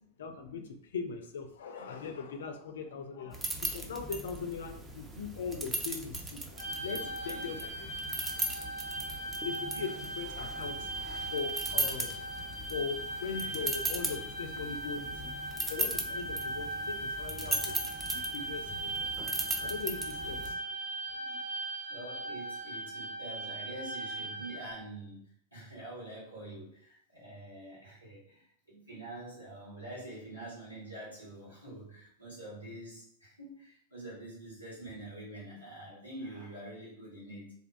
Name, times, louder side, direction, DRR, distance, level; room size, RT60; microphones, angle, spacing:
voice 1, 0.2-8.0 9.4-18.9 19.6-20.6 21.1-21.4, left 5 dB, 60° left, 6 dB, 0.3 m, -40 dB
sound 1, 3.3-20.5, right 2 dB, 15° right, 0.4 m, -38 dB
sound 2, 6.6-24.7, right 2 dB, 55° right, 0.9 m, -39 dB
voice 2, 21.9-37.5, right 1 dB, 85° right, -8 dB, 1.2 m, -46 dB
2.4 x 2.2 x 2.4 m, 0.63 s
figure-of-eight pair, 90°, 0 cm